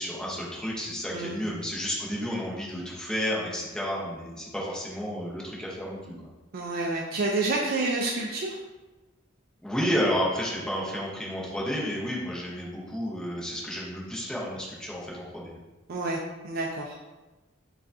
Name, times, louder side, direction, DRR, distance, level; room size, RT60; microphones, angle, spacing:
voice 1, 0.0-6.0 9.6-15.6, equal, 5° left, -5 dB, 0.8 m, -31 dB
voice 2, 6.5-8.6 15.9-17.0, right 2 dB, 50° right, -2 dB, 0.4 m, -29 dB
6.4 x 2.4 x 2.6 m, 1.1 s
head